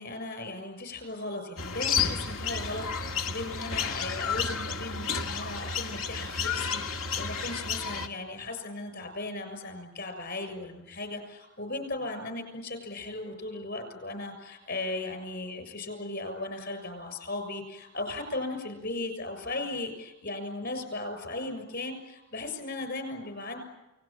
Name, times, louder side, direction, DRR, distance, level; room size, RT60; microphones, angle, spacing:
voice 1, 0.0-23.6, left 2 dB, 55° left, 7 dB, 7.0 m, -37 dB
sound 1, 1.6-8.1, left 6 dB, 85° left, 2.1 m, -31 dB
29.0 x 19.5 x 8.9 m, 1.0 s
head